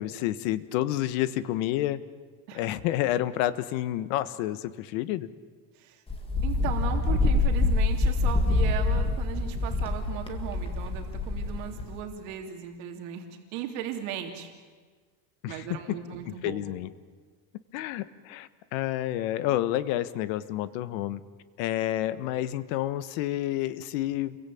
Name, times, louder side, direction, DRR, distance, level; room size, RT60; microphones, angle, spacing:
voice 1, 0.0-2.0 2.5-5.3 15.4-15.6 16.4-16.9 17.7-21.2 21.6-24.4, left 14 dB, 75° left, 14 dB, 1.5 m, -29 dB
Wind, 6.1-12.0, left 3 dB, 15° left, 2.2 m, -26 dB
voice 2, 6.4-14.5 15.5-16.7, right 9 dB, 70° right, 3 dB, 3.3 m, -37 dB
29.5 x 23.0 x 8.6 m, 1.5 s
cardioid pair, 165°, 40 cm